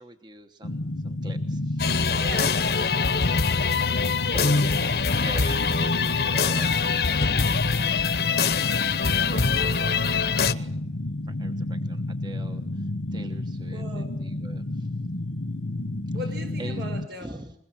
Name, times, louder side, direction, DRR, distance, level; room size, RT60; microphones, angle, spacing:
voice 1, 0.0-2.3 3.8-8.8 9.1-10.9 11.2-14.9 16.6-16.8 17.2-17.5, right 2 dB, 25° right, 7 dB, 1.1 m, -44 dB
sound 1, 0.6-17.1, left 1 dB, 90° left, 1.2 m, -31 dB
sound 2, 1.8-10.5, left 5 dB, 60° left, 0.9 m, -24 dB
voice 2, 2.2-3.3 3.9-4.3 4.9-5.1 13.7-14.2 16.1-17.5, right 1 dB, 70° right, 6 dB, 5.5 m, -39 dB
21.5 x 21.5 x 7.5 m, 0.71 s
head